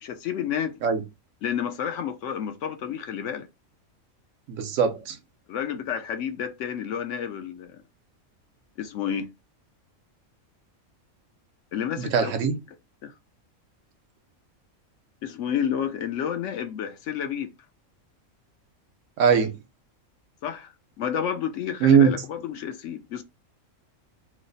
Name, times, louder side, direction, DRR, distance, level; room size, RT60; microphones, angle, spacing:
voice 1, 0.0-0.8 1.4-3.5 5.5-7.8 8.8-9.3 11.7-12.6 13.0-13.1 15.2-17.5 20.4-20.7 21.0-23.2, left 8 dB, 70° left, 0.9 m, -30 dB
voice 2, 4.5-5.2 12.0-12.6 19.2-19.5 21.8-22.1, right 7 dB, 70° right, 1.0 m, -20 dB
3.1 x 2.0 x 3.8 m
omnidirectional pair, 1.4 m